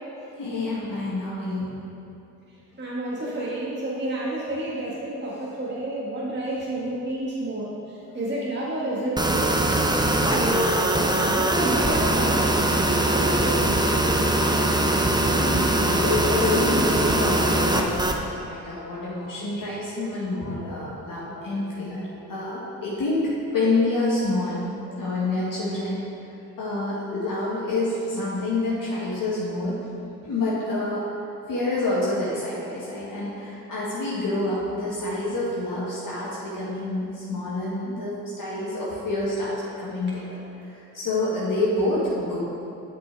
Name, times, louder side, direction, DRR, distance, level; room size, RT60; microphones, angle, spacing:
voice 1, 0.4-1.8 15.3-23.3 23.5-24.6 25.0-26.0 26.6-29.8 30.2-31.1 31.5-40.4 40.9-42.4, left 2 dB, 55° left, -7 dB, 1.7 m, -27 dB
voice 2, 2.8-9.7 10.2-14.4 24.9-25.1, right 1 dB, 25° right, -7 dB, 1.7 m, -30 dB
sound 1, 9.2-18.2, right 1 dB, 10° right, 0.8 m, -22 dB
8.0 x 5.2 x 4.6 m, 2.8 s
hypercardioid pair, 45°, 40 cm